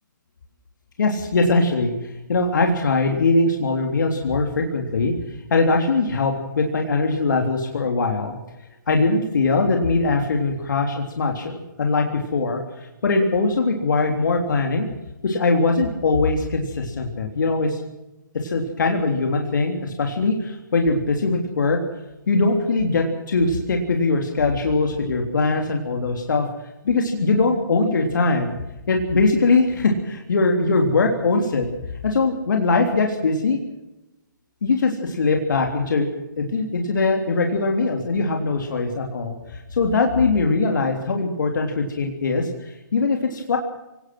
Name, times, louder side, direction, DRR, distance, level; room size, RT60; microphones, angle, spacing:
voice 1, 1.0-5.1 5.5-8.3 8.9-14.9 15.2-17.8 18.4-21.8 22.3-26.5 26.8-28.5 28.9-31.7 32.0-33.6 34.6-36.1 36.4-43.6, left 3 dB, 70° left, 3 dB, 3.4 m, -21 dB
25.5 x 18.5 x 6.2 m, 0.96 s
hypercardioid pair, 140°, 11 cm